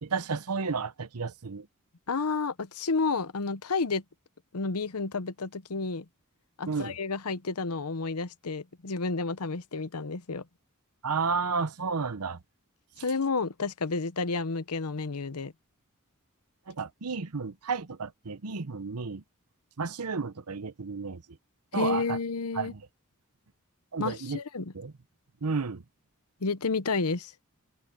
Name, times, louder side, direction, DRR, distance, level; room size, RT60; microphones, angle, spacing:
voice 1, 0.0-1.7 6.7-6.9 11.0-12.4 16.7-19.2 19.8-21.2 21.7-22.2 22.5-22.8 23.9-24.4 24.7-24.9 25.4-25.8, right 5 dB, 90° right, 0.9 m, -32 dB
voice 2, 2.1-4.0 4.5-6.0 6.6-10.4 13.0-15.5 21.7-22.7 24.0-24.7 26.4-27.3, left 4 dB, 80° left, 0.9 m, -31 dB
open air
head